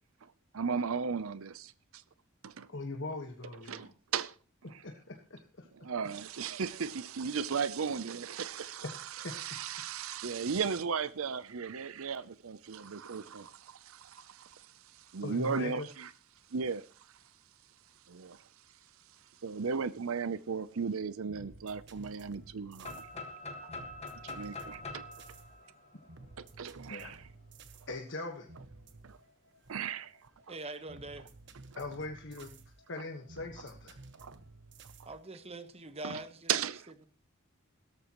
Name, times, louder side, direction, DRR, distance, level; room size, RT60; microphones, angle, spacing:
voice 1, 0.5-2.0 2.4-2.7 3.7-4.3 4.7-4.8 5.8-14.7 14.9-16.1 16.5-16.9 18.1-18.4 19.4-23.0 24.2-25.0 26.4-27.2 29.0-29.2 29.7-30.1 34.2-34.4 36.0-36.2 36.5-36.9, right 6 dB, 70° right, 0.6 m, -36 dB
voice 2, 2.7-3.9 4.8-5.7 9.2-9.3 15.2-15.9 26.9-27.1 27.9-28.5 31.8-32.5 32.9-34.0, left 2 dB, 55° left, 1.4 m, -40 dB
sound 1, 21.0-35.7, right 2 dB, 55° right, 1.3 m, -54 dB
sound 2, 22.8-26.7, left 2 dB, 30° left, 1.6 m, -44 dB
voice 3, 30.5-31.3 35.0-36.5, right 2 dB, 30° right, 1.1 m, -43 dB
17.0 x 13.5 x 3.0 m
head